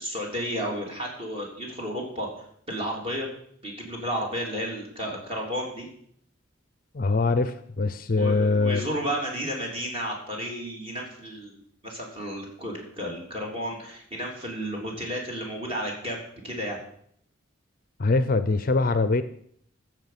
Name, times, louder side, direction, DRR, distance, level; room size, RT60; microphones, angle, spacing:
voice 1, 0.0-3.3 3.6-5.9 8.1-11.6 11.8-16.8, equal, 30° right, -1 dB, 3.3 m, -32 dB
voice 2, 6.9-8.8 18.0-19.2, left 3 dB, 45° left, 12 dB, 0.5 m, -23 dB
14.5 x 7.1 x 5.9 m, 0.66 s
head